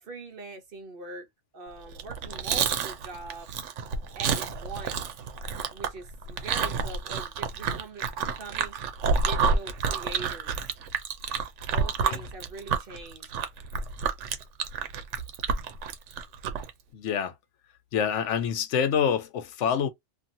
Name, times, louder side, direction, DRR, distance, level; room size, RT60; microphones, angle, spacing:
voice 1, 0.0-1.3 1.5-3.5 4.1-5.0 5.7-8.8 9.1-10.6 11.7-13.3, right 3 dB, 55° right, 0.9 m, -42 dB
Chewing mastication, 1.9-16.7, right 5 dB, 90° right, 1.0 m, -29 dB
voice 2, 16.9-17.3 17.9-19.9, left 7 dB, 85° left, 1.0 m, -26 dB
2.7 x 2.6 x 2.6 m
omnidirectional pair, 1.2 m